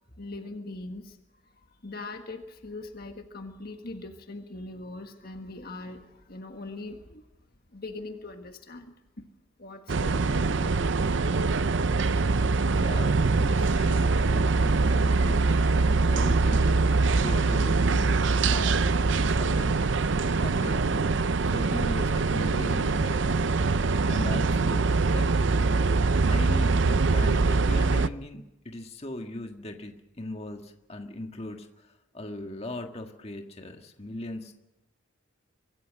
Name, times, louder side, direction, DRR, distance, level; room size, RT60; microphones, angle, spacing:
voice 1, 0.2-1.2 1.8-7.2 7.7-9.0 9.6-10.7, left 2 dB, 50° left, 5 dB, 1.6 m, -41 dB
sound 1, 9.9-28.1, right 3 dB, 60° right, 0.6 m, -23 dB
voice 2, 12.6-18.8 19.1-19.8 20.4-21.2 21.5-23.4 24.1-25.3 26.3-26.7 27.1-34.5, left 1 dB, 30° left, 4 dB, 1.7 m, -39 dB
24.5 x 14.0 x 7.6 m, 0.95 s
head